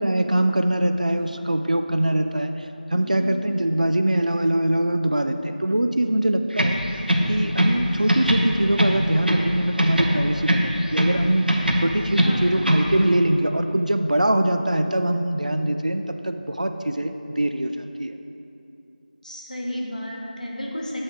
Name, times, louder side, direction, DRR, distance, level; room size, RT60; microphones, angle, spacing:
voice 1, 0.0-2.5 2.9-6.8 7.3-11.6 11.8-18.2, right 1 dB, 50° right, 7 dB, 0.4 m, -23 dB
voice 2, 2.9-3.3 12.2-12.5 19.2-21.0, left 1 dB, 55° left, -2 dB, 1.4 m, -32 dB
sound 1, 6.5-7.8 8.1-9.5 9.8-11.2 11.5-12.9, equal, 75° right, 1.0 m, -21 dB
7.9 x 6.3 x 4.4 m, 2.9 s
figure-of-eight pair, 175°, 5 cm